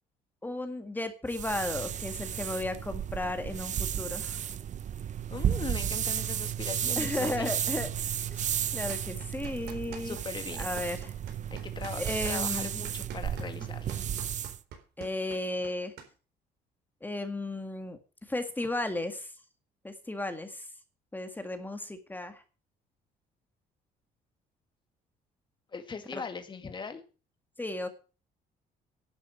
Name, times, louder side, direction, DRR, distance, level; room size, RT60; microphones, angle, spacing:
voice 1, 0.4-4.4 6.9-7.9 8.3-8.5 8.7-10.2 10.6-11.1 11.9-12.8 15.0-15.9 17.0-18.0 18.3-19.3 19.8-20.7 21.1-22.4 26.1-26.2 27.6-27.9, left 2 dB, 10° left, 7 dB, 1.8 m, -34 dB
sound 1, 1.3-14.6, right 9 dB, 45° right, 0.9 m, -33 dB
voice 2, 5.3-7.5 10.0-10.7 11.5-13.9 25.7-27.0, left 5 dB, 30° left, 7 dB, 2.2 m, -40 dB
sound 2, 8.9-10.2 10.5-16.1, right 7 dB, 75° right, 4.1 m, -46 dB
11.5 x 6.8 x 8.7 m, 0.35 s
cardioid pair, 110°, 17 cm